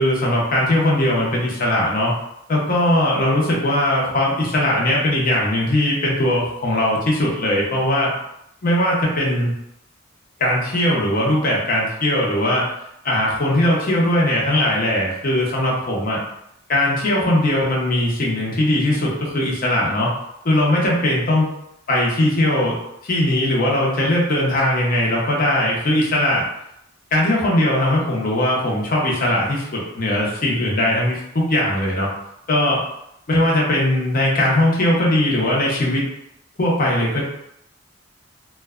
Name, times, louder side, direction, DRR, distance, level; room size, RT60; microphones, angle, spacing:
voice 1, 0.0-2.1 2.5-8.1 8.6-9.5 10.4-12.7 13.0-16.2 16.7-20.1 20.4-21.5 21.9-22.8 23.0-26.4 27.1-32.1 32.5-32.9 33.3-36.1 36.6-37.2, left 1 dB, 45° left, -4 dB, 0.7 m, -19 dB
2.5 x 2.1 x 2.3 m, 0.80 s
head